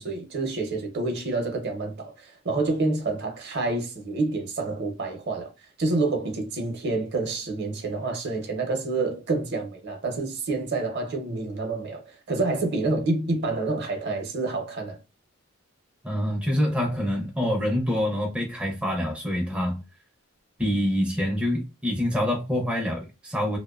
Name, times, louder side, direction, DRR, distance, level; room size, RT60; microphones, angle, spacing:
voice 1, 0.0-5.5 5.8-15.0, right 3 dB, 50° right, 0.6 m, -28 dB
voice 2, 16.0-19.8 20.6-23.6, equal, 5° right, 0.4 m, -26 dB
2.5 x 2.1 x 2.3 m
head